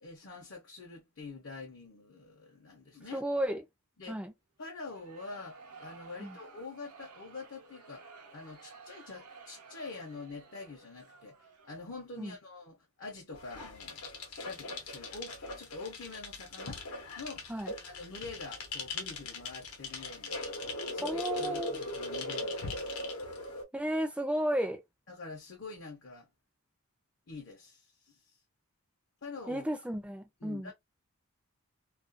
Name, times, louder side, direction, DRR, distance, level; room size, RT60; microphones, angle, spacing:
voice 1, 0.0-3.2 4.0-4.2 4.6-16.8 17.2-17.5 17.9-20.4 20.9-22.9 25.1-26.3 27.3-28.4 29.2-29.6 30.4-30.7, left 3 dB, 55° left, 0.6 m, -46 dB
voice 2, 3.1-3.6 4.1-4.3 6.2-6.4 12.2-12.4 17.5-17.7 21.0-21.8 23.7-24.8 29.5-30.7, right 1 dB, 5° right, 0.4 m, -33 dB
sound 1, 4.8-12.0, right 4 dB, 80° right, 0.7 m, -54 dB
sound 2, 13.3-23.6, left 2 dB, 85° left, 0.8 m, -39 dB
2.4 x 2.2 x 2.5 m
head